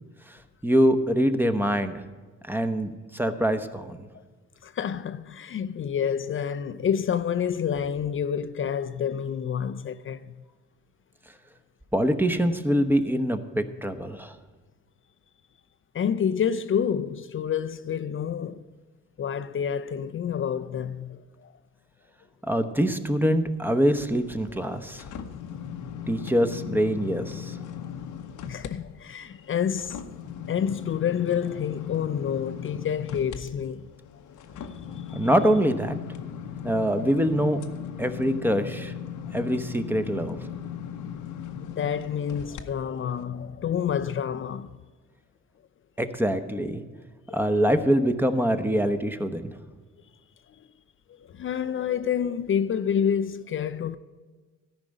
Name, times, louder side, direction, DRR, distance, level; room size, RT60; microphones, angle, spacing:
voice 1, 0.6-2.0 2.5-4.1 11.9-14.3 22.5-25.0 26.1-27.6 35.1-35.9 36.6-37.6 38.0-38.9 39.3-40.4 46.0-46.8 47.3-49.5, equal, 5° right, 0.9 m, -24 dB
voice 2, 4.6-10.4 15.9-18.6 19.2-21.5 28.4-30.0 30.5-33.9 34.6-35.3 41.6-44.7 47.3-47.4 51.1-54.0, left 8 dB, 45° left, 0.5 m, -28 dB
sound 1, 24.1-28.7 29.1-42.6 43.1-43.2, left 8 dB, 80° left, 0.9 m, -38 dB
13.5 x 5.2 x 8.8 m
cardioid pair, 90°, 30 cm